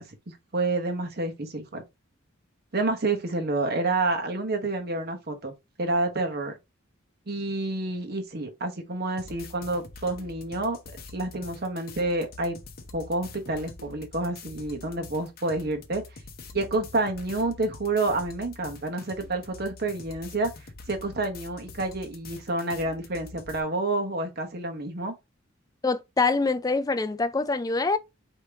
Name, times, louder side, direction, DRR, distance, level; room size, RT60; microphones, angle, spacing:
voice 1, 0.0-1.8 2.7-6.5 7.3-10.8 11.1-12.6 12.9-16.0 16.5-20.5 20.9-25.1, right 2 dB, 50° right, 1.0 m, -29 dB
sound 1, 9.2-23.6, left 4 dB, 45° left, 0.7 m, -46 dB
voice 2, 25.8-28.0, left 3 dB, 20° left, 0.3 m, -25 dB
5.0 x 2.9 x 3.4 m
head